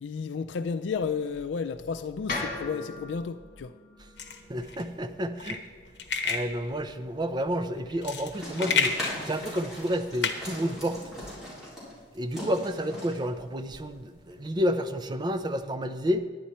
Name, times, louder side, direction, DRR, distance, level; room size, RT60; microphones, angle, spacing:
voice 1, 0.0-3.8, left 5 dB, 85° left, 0.4 m, -32 dB
sound 1, 2.3-6.4, left 2 dB, 50° left, 1.9 m, -39 dB
sound 2, 4.2-11.4, left 5 dB, 70° left, 1.0 m, -32 dB
voice 2, 4.5-5.6 6.2-9.0 9.3-11.0 12.1-16.2, equal, 25° right, 0.5 m, -30 dB
sound 3, 8.3-14.8, equal, 5° right, 3.8 m, -40 dB
10.5 x 10.0 x 4.3 m
head